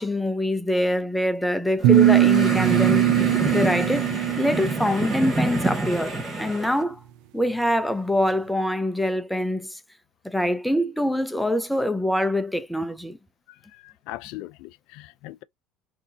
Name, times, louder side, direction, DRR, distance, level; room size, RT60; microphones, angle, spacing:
voice 1, 0.0-3.1 3.5-7.0 7.3-9.8 10.2-13.2, left 1 dB, ahead, 0.4 m, -24 dB
sound 1, 1.8-6.8, right 2 dB, 20° right, 1.2 m, -27 dB
sound 2, 1.8-5.0, right 14 dB, 70° right, 0.3 m, -20 dB
voice 2, 13.5-15.4, left 17 dB, 70° left, 0.4 m, -40 dB
3.9 x 2.7 x 2.7 m
cardioid pair, 150°, 0 cm